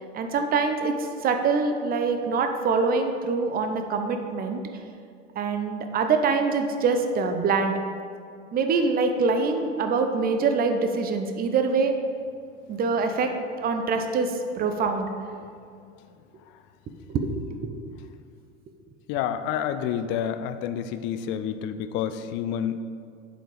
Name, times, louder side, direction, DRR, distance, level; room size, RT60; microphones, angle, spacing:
voice 1, 0.1-4.6 5.4-7.8 8.5-11.9 12.7-13.3 13.6-15.1 17.1-17.3 17.6-17.8, right 4 dB, 25° right, 6 dB, 0.7 m, -24 dB
voice 2, 19.1-22.8, left 9 dB, 35° left, 10 dB, 0.4 m, -29 dB
7.4 x 4.9 x 4.9 m, 2.3 s
figure-of-eight pair, 85°, 37 cm